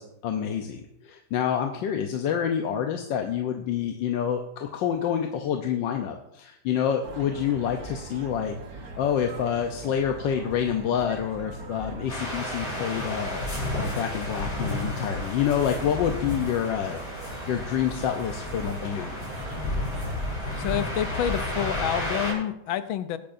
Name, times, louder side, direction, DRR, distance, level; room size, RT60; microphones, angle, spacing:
voice 1, 0.0-13.4 13.7-19.2, left 8 dB, 70° left, 4 dB, 1.4 m, -28 dB
sound 1, 7.0-22.3, right 2 dB, 50° right, 1.5 m, -41 dB
sound 2, 12.1-22.3, left 1 dB, 55° left, 5.5 m, -32 dB
voice 2, 20.6-23.2, left 10 dB, 90° left, 11 dB, 1.5 m, -28 dB
20.5 x 8.6 x 2.6 m, 0.79 s
omnidirectional pair, 2.1 m